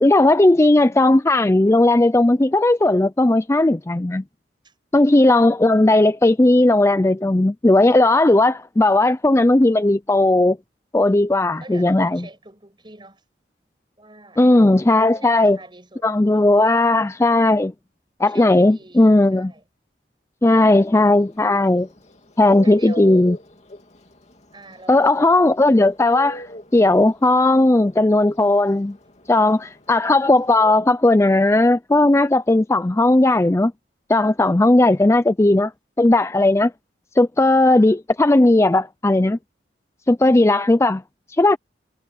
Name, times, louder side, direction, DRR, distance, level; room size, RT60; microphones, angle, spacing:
voice 1, 0.0-4.2 4.9-10.6 10.9-12.3 14.4-15.6 16.0-17.7 18.2-19.5 20.4-21.9 22.4-23.4 24.9-26.4 26.7-29.0 29.3-33.7 34.1-35.7 36.0-36.7 37.2-39.4 40.1-41.0 41.4-41.6, left 2 dB, 15° left, 0.4 m, -16 dB
voice 2, 11.6-13.2 14.0-14.4 14.9-16.1 16.3-16.9 18.3-19.6 22.6-23.2 24.5-25.4, right 2 dB, 25° right, 7.1 m, -43 dB
Bird, 20.8-30.8, right 1 dB, 40° left, 2.5 m, -36 dB
head